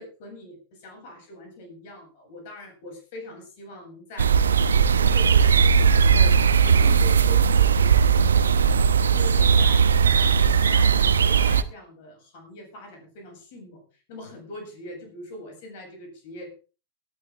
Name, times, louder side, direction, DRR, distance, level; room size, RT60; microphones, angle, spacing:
voice 1, 0.0-4.4 4.7-6.4 6.6-13.8 14.1-16.5, left 1 dB, 50° left, 4 dB, 7.9 m, -42 dB
sound 1, 4.2-11.6, right 6 dB, 70° right, 1.0 m, -18 dB
18.5 x 12.0 x 3.8 m, 0.35 s
figure-of-eight pair, 90°, 0 cm